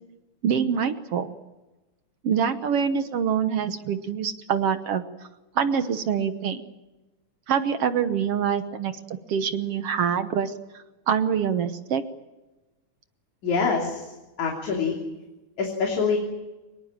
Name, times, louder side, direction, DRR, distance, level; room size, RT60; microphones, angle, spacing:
voice 1, 0.4-1.3 2.2-5.0 5.6-6.6 7.5-8.9 9.3-10.5 11.1-12.0, right 7 dB, 60° right, 10 dB, 1.9 m, -25 dB
voice 2, 13.4-15.0 15.6-16.2, left 5 dB, 80° left, 1 dB, 4.5 m, -25 dB
24.0 x 21.0 x 7.4 m, 1.1 s
omnidirectional pair, 3.3 m